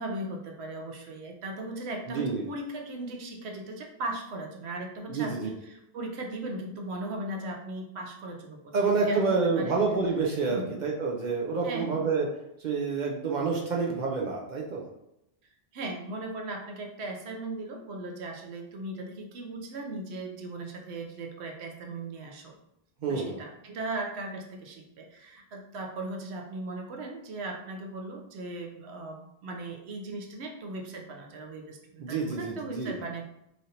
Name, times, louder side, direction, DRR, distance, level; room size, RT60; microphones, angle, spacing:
voice 1, 0.0-9.8 10.5-10.7 11.6-12.1 15.7-22.6 23.1-33.2, right 2 dB, 85° right, 2 dB, 0.9 m, -38 dB
voice 2, 2.1-2.4 5.1-5.5 8.7-12.3 12.6-14.8 23.0-23.4 32.0-33.0, right 4 dB, 55° right, -1 dB, 0.5 m, -28 dB
3.2 x 2.5 x 2.7 m, 0.83 s
omnidirectional pair, 1.1 m